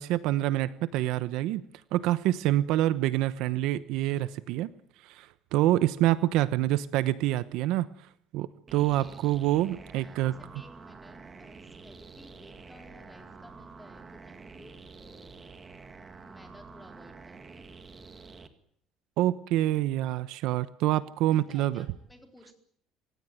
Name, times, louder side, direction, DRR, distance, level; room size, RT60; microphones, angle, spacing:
voice 1, 0.0-1.6 1.9-4.7 5.0-7.9 8.3-10.4 19.2-21.9, right 14 dB, 70° right, 15 dB, 1.0 m, -26 dB
sound 1, 8.7-18.5, right 4 dB, 20° right, 2.0 m, -48 dB
voice 2, 8.9-9.2 9.9-15.5 16.1-17.7 21.3-22.5, left 1 dB, 5° left, 4 dB, 4.3 m, -55 dB
27.5 x 16.0 x 9.4 m, 0.68 s
cardioid pair, 155°, 0 cm